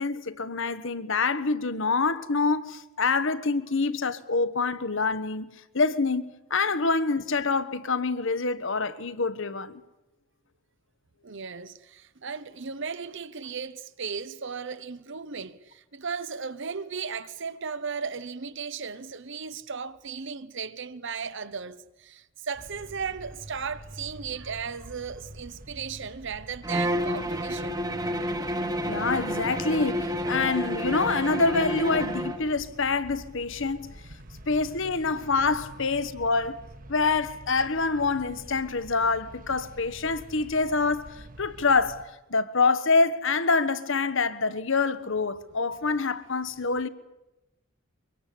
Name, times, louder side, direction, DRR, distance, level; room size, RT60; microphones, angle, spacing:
voice 1, 0.0-9.8 28.9-33.9 34.5-36.6 36.9-42.0 42.3-46.9, left 4 dB, 65° left, 1.3 m, -26 dB
voice 2, 11.2-27.8 34.3-34.4, right 5 dB, 60° right, 1.0 m, -36 dB
sound 1, 22.5-42.0, right 1 dB, 40° right, 1.6 m, -47 dB
Bowed string instrument, 26.6-32.5, equal, 20° right, 1.5 m, -30 dB
24.0 x 23.0 x 8.6 m
head